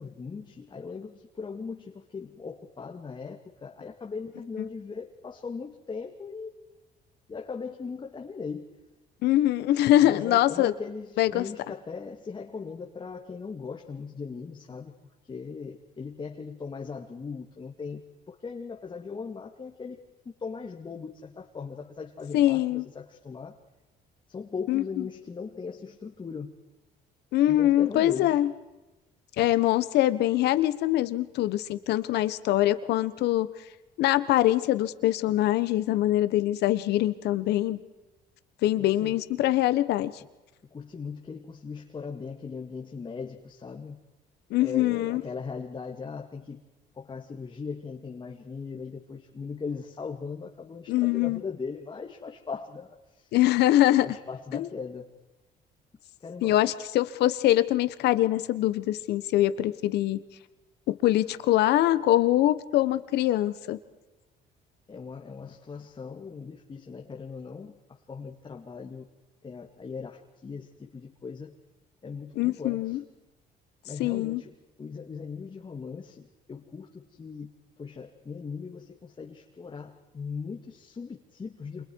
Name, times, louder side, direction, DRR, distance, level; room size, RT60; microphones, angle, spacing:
voice 1, 0.0-6.5 7.3-8.7 10.0-15.0 15.2-20.0 20.4-23.6 24.3-26.6 27.5-28.4 38.8-39.2 40.7-44.0 44.6-46.6 47.0-53.4 54.0-55.1 56.2-56.6 64.9-67.8 68.1-69.1 69.4-71.5 72.0-73.0 73.9-77.5 77.8-81.8, left 5 dB, 30° left, 1 dB, 2.3 m, -39 dB
voice 2, 9.2-10.7 11.2-11.4 22.3-22.9 24.7-24.8 27.3-28.5 29.4-33.5 34.0-37.8 38.6-40.1 44.5-45.2 50.9-51.4 53.3-54.1 54.5-54.7 56.4-60.2 60.9-63.8 72.4-73.0 74.0-74.4, left 14 dB, 80° left, 13 dB, 1.4 m, -23 dB
30.0 x 27.5 x 4.8 m, 1.1 s
cardioid pair, 110°, 17 cm